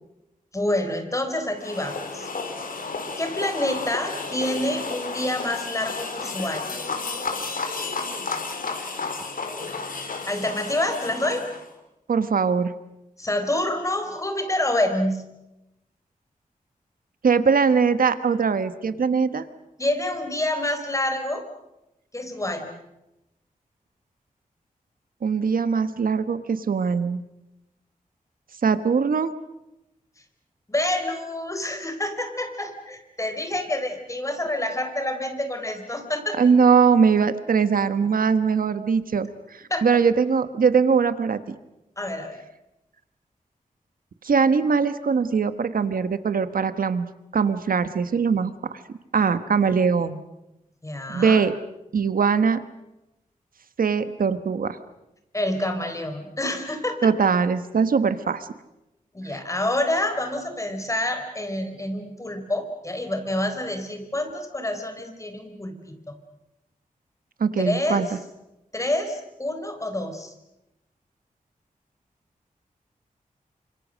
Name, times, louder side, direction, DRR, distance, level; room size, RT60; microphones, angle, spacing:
voice 1, 0.5-2.3 3.2-6.7 10.3-11.5 13.2-15.2 19.8-21.4 22.1-22.7 30.7-36.4 39.7-39.9 42.0-42.4 50.8-51.4 55.3-57.1 59.1-65.9 67.6-68.0 68.7-70.3, left 1 dB, 20° left, 6 dB, 4.1 m, -27 dB
sound 1, 1.6-11.7, left 4 dB, 80° left, 3.7 m, -32 dB
voice 2, 12.1-12.7 17.2-19.4 25.2-27.2 28.6-29.3 36.4-41.5 44.2-47.1 47.3-48.8 49.1-50.2 51.1-51.5 51.9-52.6 53.8-54.8 57.0-58.5 59.3-59.4 67.4-68.1, right 5 dB, 90° right, 12 dB, 1.3 m, -21 dB
28.5 x 26.0 x 6.4 m, 0.92 s
wide cardioid pair, 120°, 14 cm